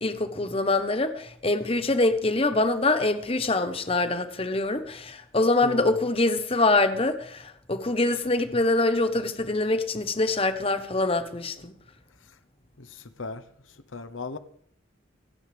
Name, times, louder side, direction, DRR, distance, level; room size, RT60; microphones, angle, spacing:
voice 1, 0.0-11.7, left 2 dB, 30° left, 1.1 m, -24 dB
voice 2, 5.6-6.0 12.8-13.4 13.9-14.4, left 4 dB, 85° left, 1.1 m, -36 dB
28.5 x 9.8 x 3.5 m
head